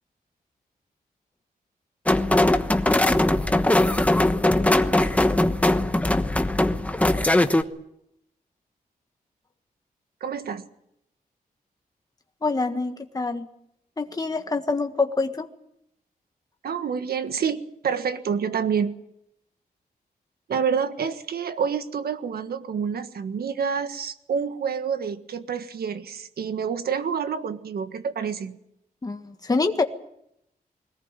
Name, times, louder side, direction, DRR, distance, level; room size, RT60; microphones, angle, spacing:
sound 1, 2.1-7.6, left 1 dB, 10° left, 1.1 m, -20 dB
voice 1, 10.2-10.6 16.6-18.9 20.5-28.6, right 6 dB, 85° right, 9 dB, 1.6 m, -28 dB
voice 2, 12.4-13.5 14.0-15.5 29.0-29.8, left 3 dB, 25° left, 6 dB, 1.7 m, -25 dB
21.5 x 19.0 x 9.1 m, 0.77 s
wide cardioid pair, 130°, 16 cm